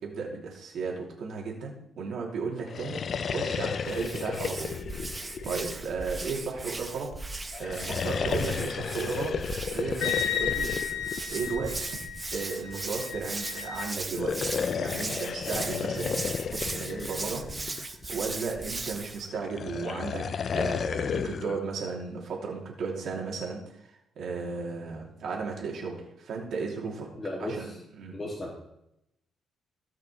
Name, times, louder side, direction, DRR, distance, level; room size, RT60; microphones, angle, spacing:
voice 1, 0.0-4.7 5.2-7.1 7.6-9.3 9.7-10.7 11.3-11.8 12.3-20.2 20.5-23.8 24.2-27.1 27.4-28.1, right 4 dB, 70° right, -1 dB, 2.9 m, -35 dB
sound 1, 2.6-6.2 7.5-11.9 14.0-18.0 19.3-21.6, left 6 dB, 50° left, 0.4 m, -33 dB
Hands, 3.8-19.2, right 2 dB, 20° right, 1.0 m, -38 dB
Wind instrument woodwind instrument, 10.0-13.9, left 8 dB, 85° left, 1.6 m, -33 dB
voice 2, 27.2-27.6 28.1-28.7, left 1 dB, 20° left, -4 dB, 2.5 m, -35 dB
17.0 x 5.8 x 3.3 m, 0.80 s
cardioid pair, 90°, 0 cm